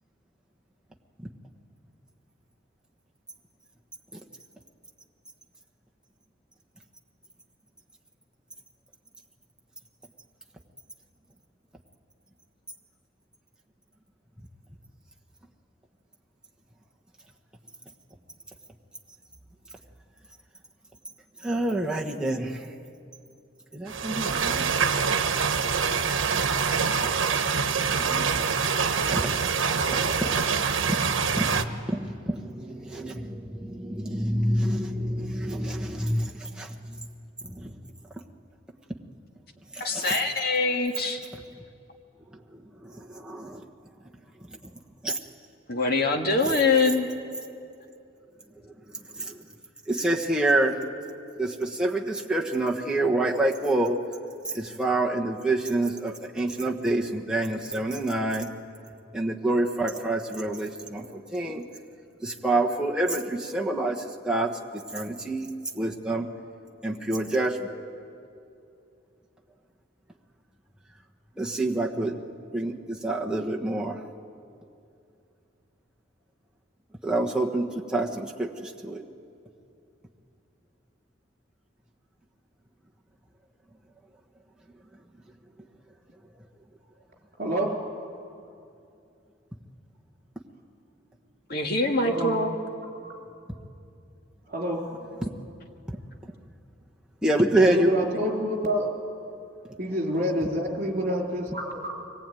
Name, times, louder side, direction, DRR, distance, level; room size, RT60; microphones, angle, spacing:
voice 1, 21.4-22.7 23.7-24.7 26.5-27.4 27.8-28.5 28.8-29.3 29.8-37.0 37.4-37.7 39.7-40.2 42.8-43.7 45.0-45.2 48.9-49.4 49.9-50.7 51.4-54.0 54.4-58.5 59.1-61.6 62.2-65.5 65.7-66.3 66.8-67.7 71.4-72.2 72.5-74.0 77.0-79.0 95.2-95.3 95.9-96.0 97.2-97.9, right 2 dB, 5° right, 1.2 m, -27 dB
sound 1, 23.9-31.6, right 5 dB, 90° right, 1.0 m, -25 dB
voice 2, 39.8-41.2 45.7-47.1 91.5-92.6, left 3 dB, 50° left, 2.0 m, -24 dB
voice 3, 87.4-87.9 92.0-92.4 94.5-94.9 97.6-98.9 99.8-102.0, equal, 45° right, 3.8 m, -27 dB
24.0 x 19.0 x 9.2 m
head